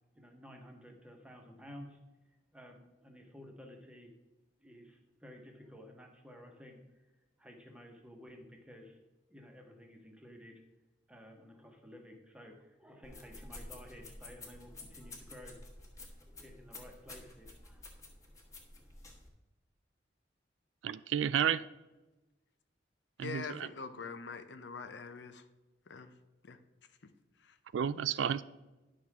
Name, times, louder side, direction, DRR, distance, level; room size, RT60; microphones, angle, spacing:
voice 1, 0.1-2.0 2.3-4.1 4.6-7.1 7.4-9.0 9.3-10.6 11.1-15.6 16.3-17.8, equal, 5° right, 1.1 m, -53 dB
sound 1, 13.0-19.3, left 2 dB, 20° left, 1.4 m, -51 dB
voice 2, 20.8-21.6 23.2-23.7 27.7-28.4, right 8 dB, 80° right, 0.3 m, -31 dB
voice 3, 23.2-25.4 25.9-26.1 26.4-26.6 27.0-27.1 27.4-27.5, left 5 dB, 65° left, 0.6 m, -44 dB
10.5 x 6.2 x 3.6 m
head